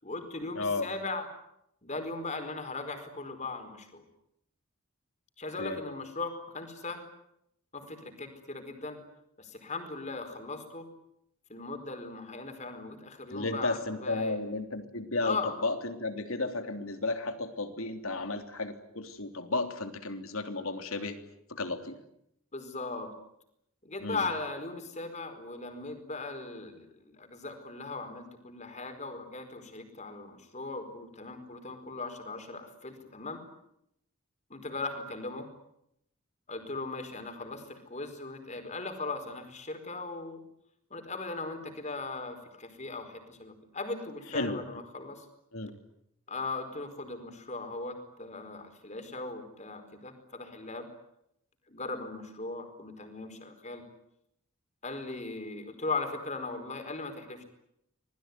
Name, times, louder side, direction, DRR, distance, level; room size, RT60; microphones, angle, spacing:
voice 1, 0.0-1.3 1.8-4.0 5.4-7.0 7.7-9.0 9.4-10.9 11.5-14.4 15.2-15.6 22.5-23.1 23.8-33.4 34.5-35.5 36.5-40.4 40.9-45.3 46.3-50.9 51.7-53.8 54.8-57.4, left 3 dB, 30° left, 7 dB, 4.6 m, -38 dB
voice 2, 0.6-0.9 5.6-5.8 13.3-15.4 15.6-21.2 21.5-22.0 24.0-24.2 44.3-44.6 45.5-45.7, left 3 dB, 70° left, 7 dB, 3.2 m, -33 dB
26.5 x 21.0 x 9.6 m, 0.77 s
head